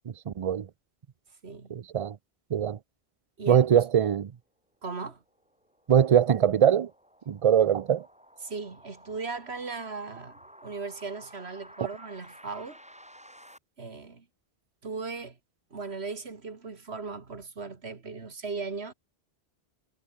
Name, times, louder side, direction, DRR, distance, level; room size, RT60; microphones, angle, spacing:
voice 1, 0.3-0.7 1.7-2.2 2.5-2.8 3.5-4.3 5.9-6.9 7.3-8.1, right 9 dB, 40° right, 0.5 m, -22 dB
voice 2, 3.4-3.8 4.8-5.2 8.4-12.8 13.8-14.3 14.8-15.4 15.7-18.9, right 4 dB, 85° right, 2.3 m, -37 dB
sound 1, 5.2-13.6, equal, 5° right, 6.0 m, -53 dB
omnidirectional pair, 1.1 m